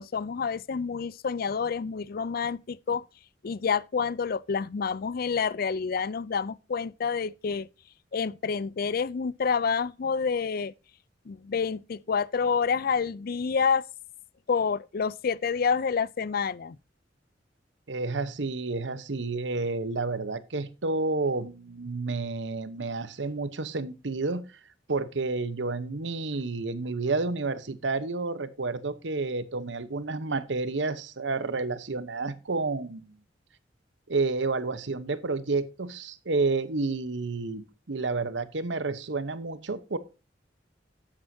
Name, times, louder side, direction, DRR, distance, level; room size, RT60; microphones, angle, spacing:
voice 1, 0.0-3.0 3.4-7.7 8.1-10.7 11.3-13.8 14.5-16.8, left 5 dB, 55° left, 0.4 m, -28 dB
voice 2, 17.9-24.4 24.9-33.2 34.1-40.0, right 3 dB, 90° right, 1.0 m, -30 dB
12.5 x 8.9 x 2.7 m
head